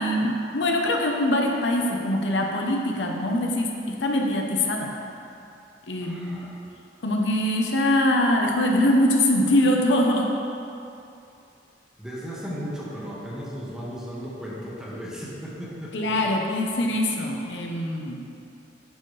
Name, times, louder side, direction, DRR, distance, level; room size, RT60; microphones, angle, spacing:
voice 1, 0.0-4.9 5.9-6.4 7.0-10.3 15.9-18.2, left 1 dB, 85° left, 1 dB, 0.9 m, -23 dB
voice 2, 6.0-6.6 12.0-16.1, equal, 5° right, -7 dB, 1.4 m, -36 dB
9.1 x 6.8 x 3.3 m, 2.7 s
head